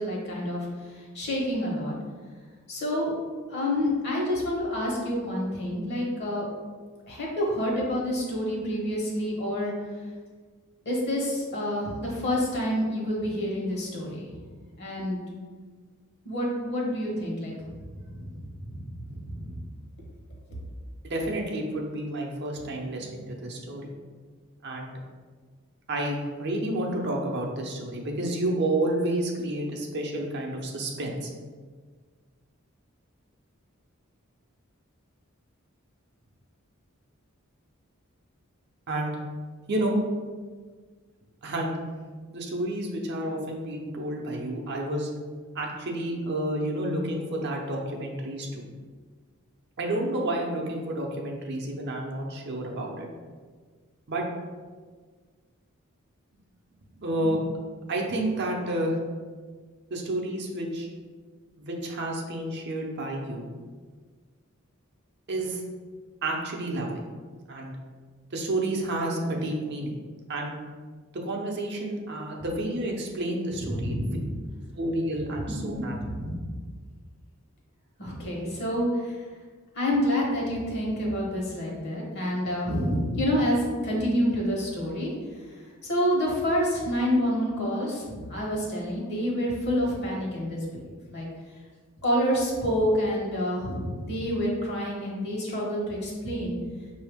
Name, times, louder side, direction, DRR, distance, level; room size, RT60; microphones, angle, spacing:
voice 1, 0.0-2.0 2.7-3.1 3.5-6.4 7.1-9.7 10.8-14.3 14.8-15.2 16.2-17.5 18.0-19.6 73.5-74.3 75.5-76.5 78.0-79.2 79.7-91.3 92.0-96.6, equal, 55° left, -3 dB, 1.2 m, -28 dB
voice 2, 21.0-23.9 24.6-25.0 25.9-31.3 38.9-39.1 39.7-40.0 41.4-41.8 42.3-45.1 45.5-48.7 49.8-53.1 54.1-54.2 57.0-57.4 57.9-59.0 59.9-60.9 61.6-63.5 65.3-65.6 66.2-67.0 67.5-67.7 68.3-70.0 70.3-70.5 71.1-74.0 74.7-76.0, right 1 dB, 55° right, 0 dB, 0.7 m, -30 dB
5.6 x 2.7 x 3.5 m, 1.5 s
head